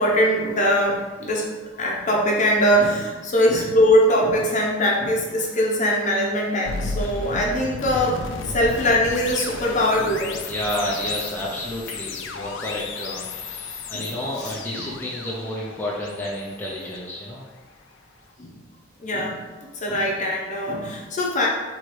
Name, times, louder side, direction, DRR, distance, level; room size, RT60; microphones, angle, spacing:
voice 1, 0.0-10.4 13.9-14.1 14.4-14.9 18.4-18.5 19.0-19.4 19.7-21.5, equal, 40° left, -2 dB, 0.8 m, -22 dB
sound 1, 6.7-17.7, left 3 dB, 70° left, 0.5 m, -34 dB
voice 2, 10.5-17.4, left 1 dB, 10° left, -5 dB, 0.5 m, -30 dB
3.1 x 3.1 x 4.6 m, 1.3 s
head